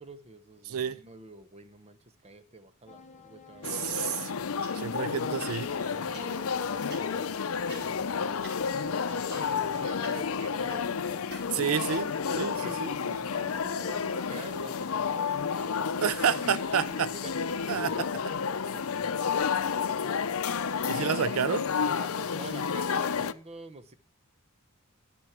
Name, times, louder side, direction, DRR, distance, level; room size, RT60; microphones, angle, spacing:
voice 1, 0.0-4.5 5.8-11.6 12.3-12.8 13.0-18.2 18.7-19.5 20.8-21.4 21.9-23.9, right 2 dB, 30° right, 0.8 m, -48 dB
voice 2, 0.7-1.0 3.6-4.3 4.7-5.8 11.5-12.1 12.4-12.9 16.0-17.1 17.7-18.1 20.9-21.6, right 7 dB, 75° right, 0.5 m, -29 dB
sound 1, 2.9-17.8, left 1 dB, 35° left, 0.9 m, -54 dB
sound 2, 3.6-23.3, left 6 dB, 80° left, 0.6 m, -31 dB
sound 3, 3.8-5.0 5.3-12.7, equal, 55° right, 4.1 m, -50 dB
12.0 x 6.2 x 5.9 m
head